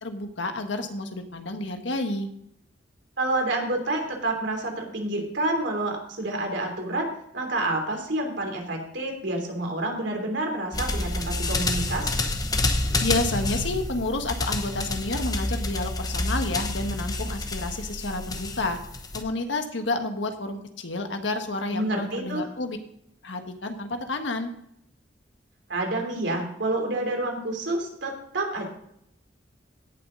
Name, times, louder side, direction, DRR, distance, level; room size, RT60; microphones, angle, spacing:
voice 1, 0.0-2.3 13.0-18.8 19.1-22.8 23.2-24.5, left 2 dB, 85° left, 6 dB, 1.5 m, -30 dB
voice 2, 3.2-7.1 7.3-12.1 21.7-22.4 25.7-28.7, right 2 dB, 70° right, 2 dB, 3.2 m, -28 dB
sound 1, 10.7-19.2, left 2 dB, 20° left, 1.0 m, -28 dB
17.0 x 7.4 x 3.9 m, 0.74 s
head